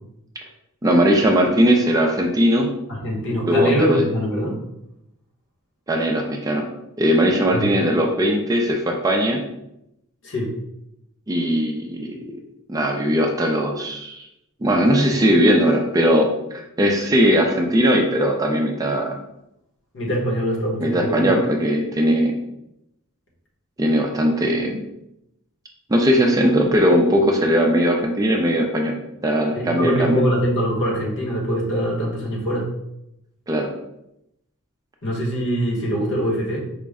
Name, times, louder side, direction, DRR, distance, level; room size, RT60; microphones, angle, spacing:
voice 1, 0.8-2.7 3.5-4.0 5.9-6.7 7.0-9.4 11.3-12.4 12.7-14.3 14.6-19.1 20.8-22.3 23.8-24.8 25.9-30.2 33.5-33.7, equal, 15° right, 2 dB, 0.4 m, -19 dB
voice 2, 2.9-4.5 7.5-7.7 10.2-10.5 19.9-21.3 29.5-32.7 35.0-36.6, equal, 60° left, -1 dB, 1.1 m, -23 dB
5.0 x 2.1 x 3.5 m, 0.83 s
head